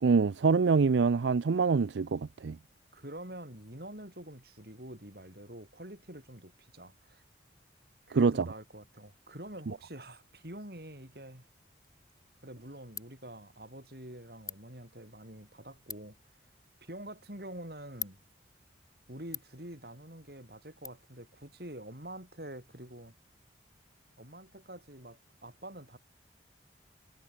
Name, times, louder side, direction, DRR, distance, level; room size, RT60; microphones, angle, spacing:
voice 1, 0.0-2.6 8.1-8.5, right 4 dB, 85° right, 0.5 m, -25 dB
voice 2, 2.9-7.2 8.1-11.4 12.4-16.2 16.8-18.2 19.1-23.1 24.2-26.0, right 1 dB, 55° right, 6.8 m, -46 dB
Ratchet pawl, 11.8-20.9, left 7 dB, 20° left, 7.0 m, -49 dB
head